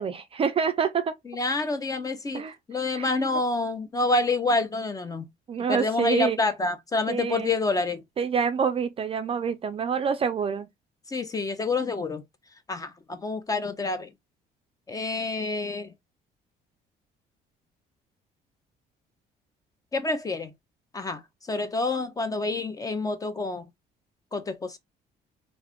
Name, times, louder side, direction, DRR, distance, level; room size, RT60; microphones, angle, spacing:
voice 1, 0.0-1.1 2.3-2.6 2.9-3.1 5.5-6.4 7.1-7.5 8.2-10.7, right 6 dB, 35° right, 0.4 m, -26 dB
voice 2, 1.3-2.4 2.7-5.2 5.7-8.0 11.1-12.2 12.7-14.1 14.9-15.9 19.9-20.5 20.9-21.2 21.5-23.6 24.3-24.8, left 3 dB, 20° left, 0.6 m, -28 dB
2.5 x 2.3 x 3.5 m
cardioid pair, 110°, 17 cm